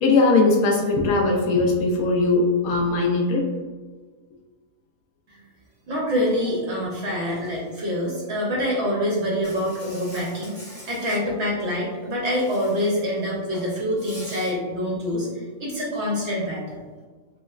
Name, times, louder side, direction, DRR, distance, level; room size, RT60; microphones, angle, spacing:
voice 1, 0.0-3.5, left 3 dB, 70° left, 0 dB, 0.9 m, -20 dB
voice 2, 5.9-16.8, equal, 55° right, -4 dB, 0.8 m, -26 dB
Insect, 9.4-11.2 12.3-13.1 13.4-14.5, equal, 15° right, 0.8 m, -44 dB
3.1 x 3.0 x 2.3 m, 1.4 s
omnidirectional pair, 1.6 m